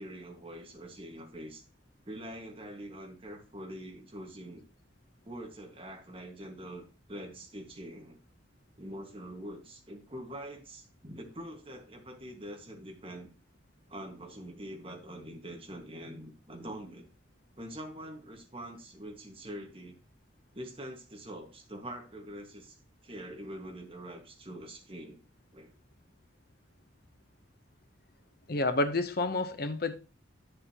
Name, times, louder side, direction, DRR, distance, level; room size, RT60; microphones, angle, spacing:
voice 1, 0.0-1.6 2.0-4.6 5.2-8.2 8.8-13.3 13.9-17.1 17.6-20.0 20.5-22.8 23.0-25.2 25.5-25.7, right 1 dB, 30° right, 1.5 m, -44 dB
voice 2, 28.5-30.0, left 2 dB, 50° left, 0.7 m, -29 dB
9.3 x 6.8 x 2.9 m
head